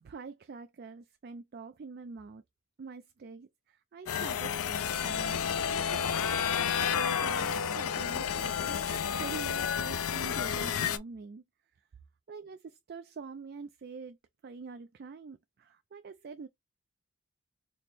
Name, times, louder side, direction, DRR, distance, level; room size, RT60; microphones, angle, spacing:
voice 1, 0.0-2.4 2.8-11.4 12.3-14.2 14.4-16.5, right 4 dB, 45° right, 0.3 m, -46 dB
sound 1, 4.1-11.0, left 7 dB, 80° left, 0.5 m, -31 dB
4.2 x 2.0 x 3.3 m
head